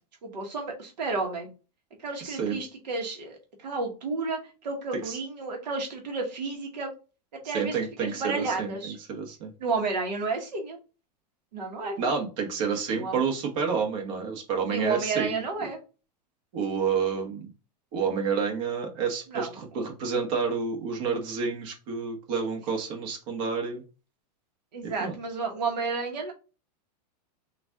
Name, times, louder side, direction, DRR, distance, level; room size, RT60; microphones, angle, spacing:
voice 1, 0.2-1.5 2.0-6.9 7.4-9.0 9.6-10.8 11.5-12.0 12.9-13.2 14.7-15.8 19.3-19.8 24.7-26.3, right 4 dB, 80° right, 2 dB, 1.2 m, -32 dB
voice 2, 2.2-2.6 5.1-5.2 7.4-9.5 12.0-15.4 16.5-17.5 17.9-23.8 24.8-25.1, right 5 dB, 50° right, 2 dB, 1.3 m, -29 dB
3.9 x 2.6 x 3.5 m, 0.32 s
hypercardioid pair, 135°, 21 cm